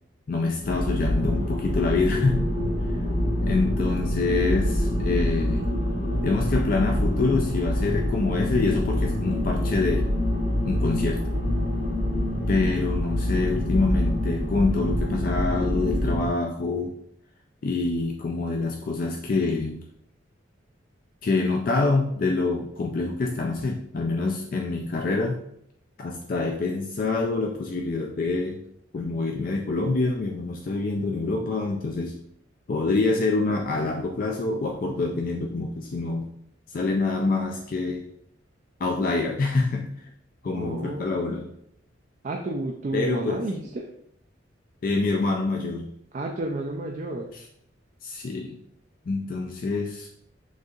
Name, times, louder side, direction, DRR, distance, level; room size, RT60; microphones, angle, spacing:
voice 1, 0.3-2.4 3.4-5.7 6.2-10.1 10.6-11.2 12.5-16.9 17.6-19.7 21.2-25.4 26.0-28.6 28.9-32.2 32.7-36.3 36.7-38.0 38.8-39.9 40.4-41.5 42.9-43.4 44.8-45.9 47.3-47.4 48.0-48.6 49.1-50.2, left 3 dB, 45° left, 2 dB, 0.4 m, -26 dB
sound 1, 0.6-16.3, left 1 dB, 75° left, 1.0 m, -26 dB
voice 2, 40.5-41.4 42.2-43.9 46.1-47.3, right 2 dB, 40° right, 1 dB, 0.3 m, -31 dB
6.3 x 2.7 x 2.4 m, 0.72 s
head